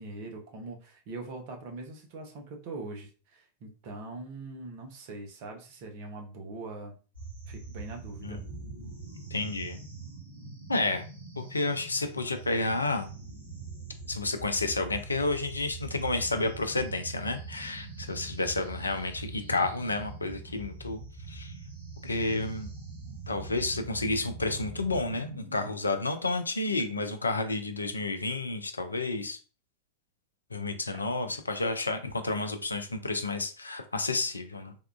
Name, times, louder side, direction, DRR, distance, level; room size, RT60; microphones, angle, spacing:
voice 1, 0.0-7.0 7.5-8.4, right 2 dB, 45° right, 3 dB, 0.7 m, -42 dB
sound 1, 7.1-25.7, right 3 dB, 80° right, 1.0 m, -43 dB
voice 2, 9.3-9.8 10.7-11.0 11.4-13.1 14.1-21.0 21.3-21.5 22.0-22.7 23.3-29.4 30.5-34.8, left 2 dB, 80° left, 8 dB, 0.4 m, -31 dB
3.5 x 2.3 x 2.3 m, 0.36 s
figure-of-eight pair, 90°, 0 cm